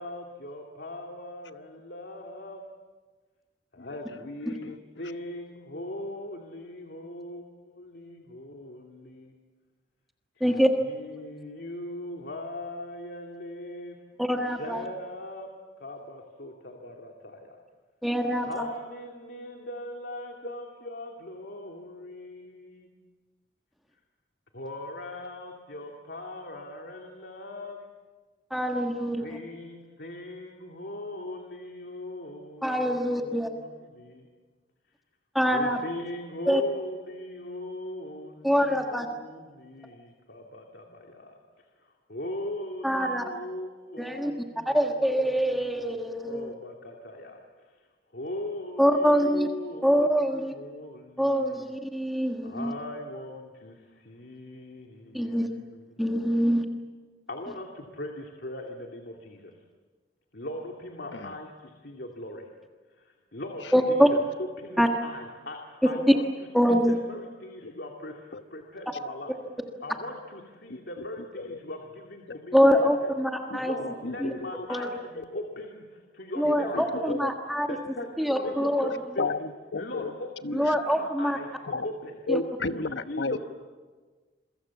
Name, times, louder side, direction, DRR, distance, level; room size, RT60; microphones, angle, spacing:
voice 1, 0.0-2.6 3.7-9.3 10.4-14.0 14.6-15.5 15.8-17.6 18.5-22.9 24.5-27.8 29.2-34.3 35.5-41.4 42.1-47.4 48.1-51.6 52.4-55.9 57.3-59.5 60.3-62.5 63.0-64.2 64.6-66.3 66.7-69.4 69.8-73.1 73.6-77.1 77.7-79.3 79.7-82.1 82.7-83.4, left 1 dB, 70° left, 1 dB, 2.4 m, -40 dB
voice 2, 3.8-4.2 4.5-4.8 61.1-61.4 63.6-63.9 67.6-67.7 68.3-68.4 70.7-71.0 71.4-71.6 72.3-72.4 73.5-74.7 75.3-75.6 76.4-77.3 78.4-78.6 79.2-80.1 80.4-80.7 81.7-81.9 82.3-83.4, left 3 dB, 90° left, 9 dB, 1.2 m, -34 dB
voice 3, 10.4-10.7 14.2-14.8 18.0-18.7 28.5-29.4 32.6-33.5 35.3-35.8 36.5-36.6 38.4-39.1 42.8-43.3 44.0-44.3 44.6-46.5 48.8-49.5 49.8-50.5 51.2-52.7 55.1-55.5 56.0-56.6 63.7-64.1 64.8-64.9 66.5-67.0 72.5-73.7 74.2-74.3 74.7-74.9 76.4-77.7 78.2-78.9 80.5-81.4 82.3-82.4, equal, ahead, 2 dB, 1.4 m, -24 dB
27.5 x 23.5 x 7.2 m, 1.4 s
head